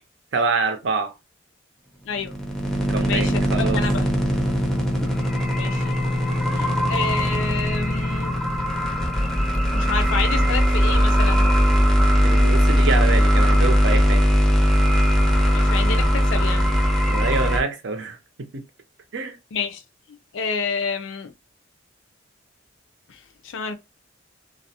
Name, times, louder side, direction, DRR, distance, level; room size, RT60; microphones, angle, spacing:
voice 1, 0.3-1.1 2.9-3.8 12.2-14.2 17.1-18.5 19.1-19.4, right 4 dB, 70° right, 0.5 m, -26 dB
sound 1, 2.1-17.6, equal, ahead, 0.5 m, -19 dB
voice 2, 3.1-4.1 5.5-6.0 6.5-8.3 9.7-11.5 15.5-16.7 19.5-19.8 20.3-21.3 23.1-23.8, left 5 dB, 85° left, 0.4 m, -29 dB
2.3 x 2.0 x 2.7 m
head